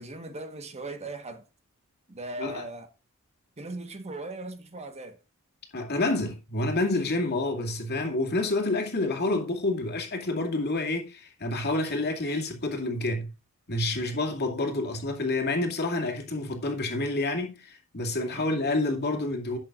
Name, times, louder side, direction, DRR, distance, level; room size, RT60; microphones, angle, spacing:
voice 1, 0.0-1.5 2.1-2.9 3.6-5.2 14.0-14.2 18.3-18.6, right 2 dB, 30° right, 1.3 m, -39 dB
voice 2, 5.7-13.3 13.7-19.6, left 2 dB, 50° left, 2.4 m, -28 dB
12.0 x 8.0 x 2.5 m
head